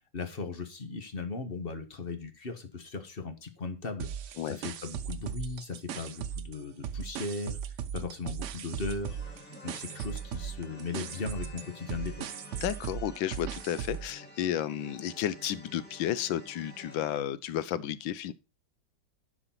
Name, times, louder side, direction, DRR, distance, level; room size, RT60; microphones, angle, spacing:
voice 1, 0.1-4.1 4.4-7.6 7.9-9.2 9.6-12.4, left 4 dB, 30° left, 1.3 m, -37 dB
sound 1, 4.0-6.6 6.8-14.1, right 8 dB, 75° right, 0.6 m, -38 dB
sound 2, 9.0-17.2, left 1 dB, 5° left, 2.6 m, -50 dB
voice 2, 12.6-18.3, left 11 dB, 80° left, 1.5 m, -32 dB
11.0 x 5.0 x 5.8 m
omnidirectional pair, 2.1 m